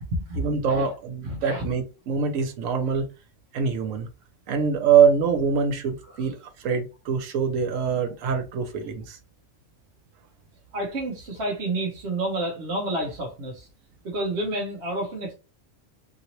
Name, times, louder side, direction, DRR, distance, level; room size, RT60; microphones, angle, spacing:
voice 1, 0.4-3.1 3.5-4.1 4.5-9.2, right 6 dB, 85° right, 1.0 m, -24 dB
voice 2, 10.7-13.6 14.0-15.3, right 1 dB, 60° right, 1.1 m, -29 dB
2.9 x 2.7 x 2.9 m
omnidirectional pair, 1.3 m